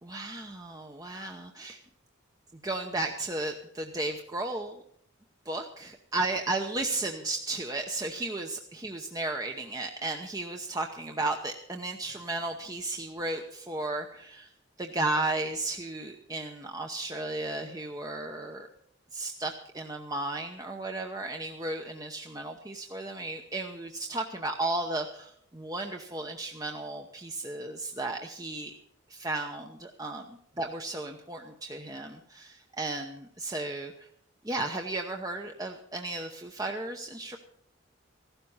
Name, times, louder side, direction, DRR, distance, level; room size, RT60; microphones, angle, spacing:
voice 1, 0.0-1.8 2.6-4.8 5.5-14.5 14.8-18.7 19.1-28.7 29.1-34.1 34.4-37.4, right 2 dB, 20° right, 3 dB, 0.8 m, -34 dB
15.5 x 12.5 x 5.6 m, 0.68 s
head